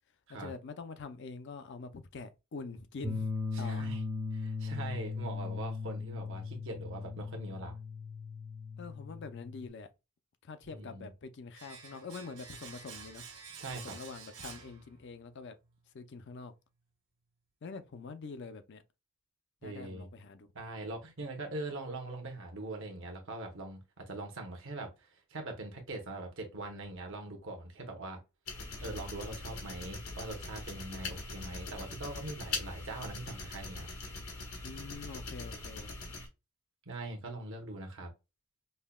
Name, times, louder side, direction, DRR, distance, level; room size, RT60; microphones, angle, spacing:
voice 1, 0.3-3.3 3.6-3.9 8.8-9.9 10.4-13.2 13.8-15.5 15.9-16.5 17.6-18.8 19.6-20.5 34.6-35.9, left 4 dB, 55° left, 0.5 m, -45 dB
sound 1, 3.0-9.7, left 4 dB, 10° right, 0.5 m, -38 dB
voice 2, 3.5-4.0 4.3-7.8 10.6-11.1 13.6-14.0 19.6-20.1 20.5-28.2 28.8-33.9 36.9-38.1, right 2 dB, 60° right, 0.9 m, -42 dB
Domestic sounds home sounds, 11.5-15.4 15.6-15.8, right 6 dB, 80° right, 1.5 m, -49 dB
sound 2, 28.5-36.3, left 3 dB, 80° left, 1.0 m, -42 dB
5.4 x 2.2 x 2.3 m
head